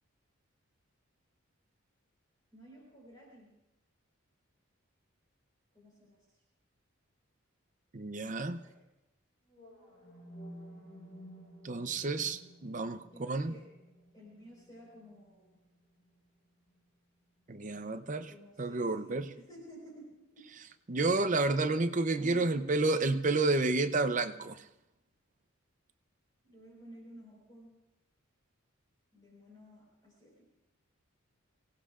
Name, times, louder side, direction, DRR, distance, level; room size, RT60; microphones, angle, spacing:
voice 1, 2.5-3.5 5.7-6.4 8.5-8.8 13.1-13.6 14.1-15.6 18.2-20.1 20.3-20.4 22.1-22.5 26.4-27.7 29.1-30.5, equal, 20° left, 4.5 m, -53 dB
voice 2, 7.9-8.6 11.6-13.5 17.5-18.3 18.6-19.3 20.9-24.6, right 3 dB, 35° right, 0.6 m, -30 dB
sound 1, 9.5-17.5, equal, 35° left, 6.5 m, -54 dB
26.0 x 17.5 x 2.5 m
head